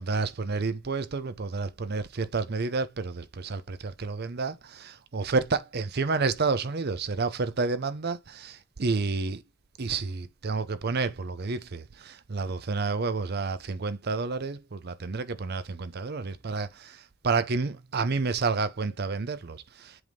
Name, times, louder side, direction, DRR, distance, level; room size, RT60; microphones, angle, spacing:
voice 1, 0.0-9.4 9.8-20.0, right 4 dB, 50° right, 0.6 m, -30 dB
7.9 x 3.5 x 3.8 m
head